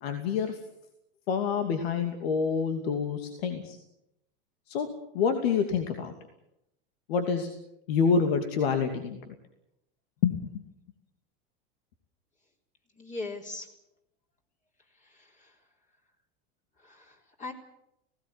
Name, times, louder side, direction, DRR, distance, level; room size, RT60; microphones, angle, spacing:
voice 1, 0.0-0.6 1.3-3.8 4.7-4.9 5.1-6.1 7.1-7.5 7.9-9.2 10.2-10.4, left 6 dB, 75° left, 6 dB, 2.7 m, -27 dB
voice 2, 13.0-13.7 15.0-15.5 16.8-17.5, left 3 dB, 25° left, 1 dB, 4.0 m, -40 dB
19.0 x 17.5 x 9.8 m, 0.82 s
hypercardioid pair, 110°, 31 cm